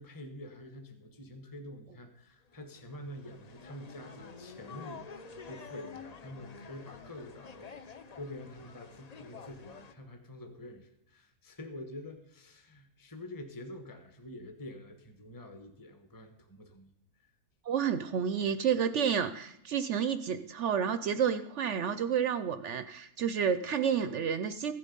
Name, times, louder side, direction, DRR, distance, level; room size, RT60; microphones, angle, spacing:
voice 1, 0.0-16.9, left 1 dB, 15° left, 6 dB, 1.1 m, -47 dB
sound 1, 2.6-9.9, left 5 dB, 55° left, 0.4 m, -49 dB
voice 2, 17.6-24.7, right 7 dB, 65° right, 11 dB, 0.7 m, -30 dB
15.0 x 7.7 x 5.3 m, 0.80 s
omnidirectional pair, 1.7 m